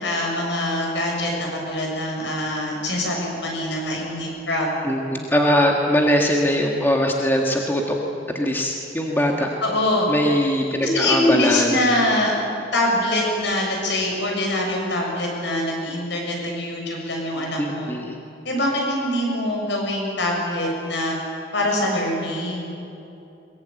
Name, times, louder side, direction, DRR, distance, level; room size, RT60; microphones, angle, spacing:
voice 1, 0.0-4.7 9.6-10.1 10.8-12.3 12.7-17.9 18.5-21.2 21.5-22.7, left 1 dB, 65° left, 0 dB, 7.1 m, -24 dB
voice 2, 4.8-8.0 8.3-9.5 10.1-11.7 12.0-12.1 17.6-18.2, equal, 10° left, 0 dB, 1.7 m, -21 dB
22.5 x 21.5 x 9.1 m, 2.8 s
head